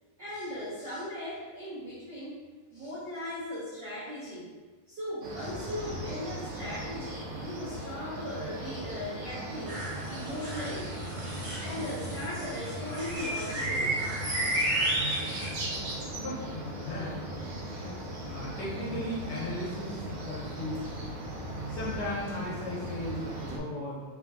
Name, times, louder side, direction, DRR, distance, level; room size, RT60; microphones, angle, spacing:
voice 1, 0.2-2.4 2.7-4.5 4.9-9.8 10.1-10.9 11.6-14.0, left 1 dB, 85° right, -9 dB, 0.9 m, -38 dB
sound 1, 5.2-23.6, right 1 dB, 65° right, 1.8 m, -35 dB
sound 2, 9.7-15.5, equal, 45° right, 1.6 m, -39 dB
voice 2, 16.1-17.9 18.2-21.1 21.7-24.0, left 1 dB, 65° left, -7 dB, 1.5 m, -37 dB
4.5 x 4.0 x 2.3 m, 1.3 s
omnidirectional pair, 3.3 m